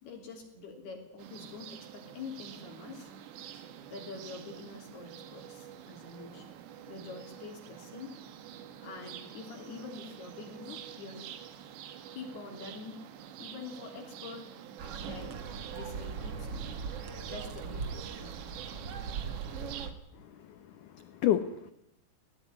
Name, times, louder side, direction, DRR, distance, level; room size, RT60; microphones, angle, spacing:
voice 1, 0.0-3.1 3.9-6.5 6.9-8.2 8.8-11.3 11.8-13.1 13.4-14.6 15.0-15.4 15.7-18.5, left 4 dB, 65° left, 2 dB, 5.0 m, -46 dB
sound 1, 1.2-19.9, right 9 dB, 80° right, 3.7 m, -47 dB
sound 2, 14.8-19.9, right 5 dB, 50° right, 1.9 m, -39 dB
voice 2, 20.1-21.7, left 11 dB, 85° left, 11 dB, 1.8 m, -31 dB
18.5 x 18.0 x 9.7 m, 0.80 s
omnidirectional pair, 5.0 m